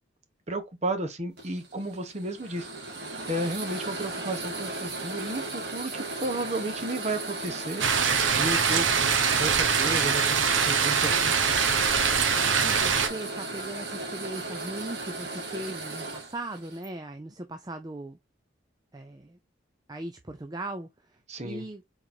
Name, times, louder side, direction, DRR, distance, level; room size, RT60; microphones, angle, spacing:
voice 1, 0.5-2.7 3.3-7.8 8.4-8.9 9.4-11.3 21.3-21.7, right 1 dB, 35° right, 1.1 m, -33 dB
sound 1, 1.4-16.9, right 2 dB, 55° right, 2.0 m, -36 dB
sound 2, 7.8-13.1, right 6 dB, 85° right, 0.9 m, -23 dB
voice 2, 12.4-18.2 18.9-19.4 19.9-21.8, right 2 dB, 20° right, 0.4 m, -39 dB
4.7 x 4.0 x 2.7 m
head